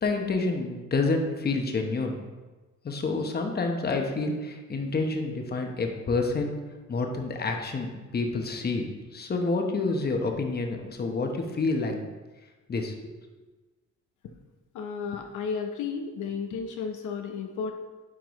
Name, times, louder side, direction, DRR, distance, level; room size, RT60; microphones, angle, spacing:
voice 1, 0.0-2.2 2.8-6.6 6.9-8.8 9.1-12.0 12.7-13.1, left 3 dB, 30° left, 3 dB, 0.9 m, -28 dB
voice 2, 14.7-17.7, left 6 dB, 75° left, 4 dB, 0.7 m, -33 dB
9.4 x 3.7 x 3.1 m, 1.2 s
cardioid pair, 90°, 30 cm